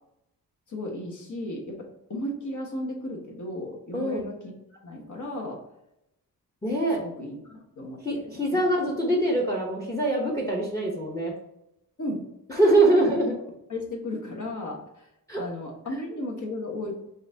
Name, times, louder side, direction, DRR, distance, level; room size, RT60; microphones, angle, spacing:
voice 1, 0.7-4.4 4.7-5.6 6.9-8.2 8.5-8.6 12.0-12.2 12.9-13.1 13.7-15.1 15.4-17.0, left 1 dB, 50° left, 0 dB, 1.3 m, -35 dB
voice 2, 3.9-4.2 6.6-7.0 8.0-11.3 12.5-13.3 15.3-15.4, right 1 dB, 10° left, 0 dB, 0.9 m, -23 dB
5.6 x 2.7 x 2.7 m, 0.85 s
wide cardioid pair, 95°, 38 cm